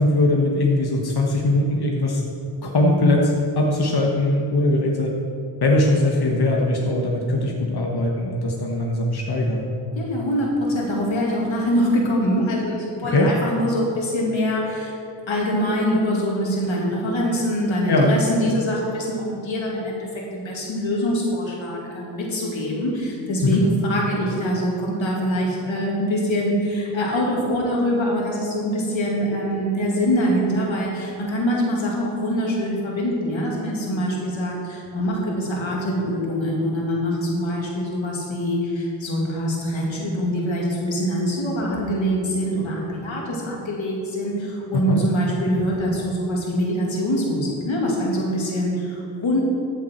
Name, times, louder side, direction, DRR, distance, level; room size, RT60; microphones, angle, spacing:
voice 1, 0.0-2.2 2.6-5.1 5.6-9.7 13.0-13.3 17.9-18.1 23.4-23.6 44.9-45.0, left 2 dB, 55° left, -1 dB, 1.3 m, -20 dB
voice 2, 9.9-15.0 15.3-49.4, equal, 90° left, -3 dB, 2.3 m, -24 dB
14.0 x 7.2 x 4.4 m, 2.6 s
cardioid pair, 55°, 45 cm